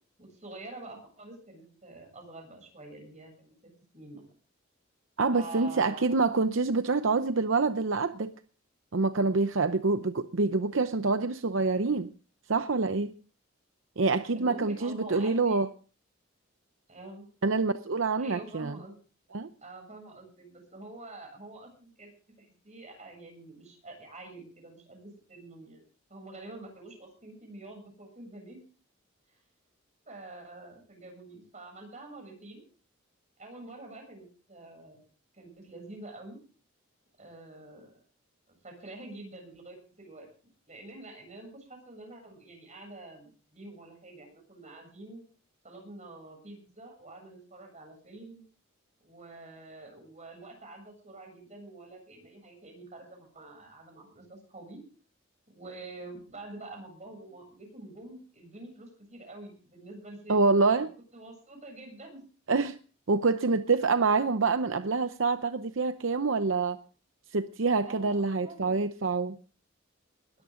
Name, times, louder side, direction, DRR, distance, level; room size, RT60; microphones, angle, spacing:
voice 1, 0.2-4.2 5.3-6.2 14.3-15.6 16.9-17.3 18.2-18.9 19.6-22.1 22.4-25.8 26.1-28.6 30.1-32.6 33.4-35.0 35.3-36.4 37.2-38.0 38.5-40.3 40.7-45.2 45.6-48.4 49.0-54.8 55.5-60.9 61.1-62.2 67.7-68.8, right 2 dB, 35° right, 7.6 m, -47 dB
voice 2, 5.2-8.3 8.9-12.1 12.5-13.1 14.0-15.7 17.4-18.7 19.3-19.5 60.3-60.9 62.5-62.8 63.1-66.8 67.3-69.4, right 3 dB, 70° right, 0.7 m, -26 dB
20.5 x 13.5 x 3.8 m
head